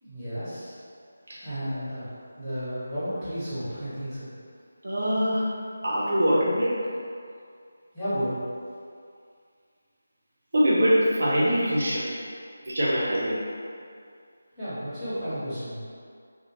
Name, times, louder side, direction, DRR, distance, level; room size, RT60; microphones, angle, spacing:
voice 1, 0.0-0.8 1.4-4.3 7.9-8.4 14.6-15.8, equal, ahead, -23 dB, 1.4 m, -32 dB
voice 2, 1.3-1.8 4.8-5.5 5.8-6.8 10.5-12.1 12.7-13.4, equal, 60° right, -6 dB, 0.5 m, -24 dB
2.6 x 2.4 x 2.8 m, 2.2 s
figure-of-eight pair, 160°, 0 cm